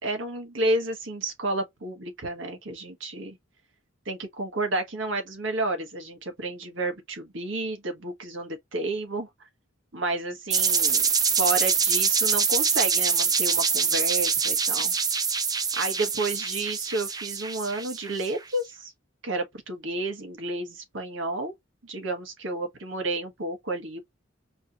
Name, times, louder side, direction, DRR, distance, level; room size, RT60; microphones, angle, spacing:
voice 1, 0.0-3.4 4.0-9.5 9.9-11.0 11.4-14.9 15.8-18.9 19.2-21.5 21.8-24.0, right 2 dB, 75° right, 1.5 m, -31 dB
sound 1, 10.5-18.3, right 6 dB, 20° right, 0.5 m, -25 dB
4.7 x 2.9 x 2.5 m
head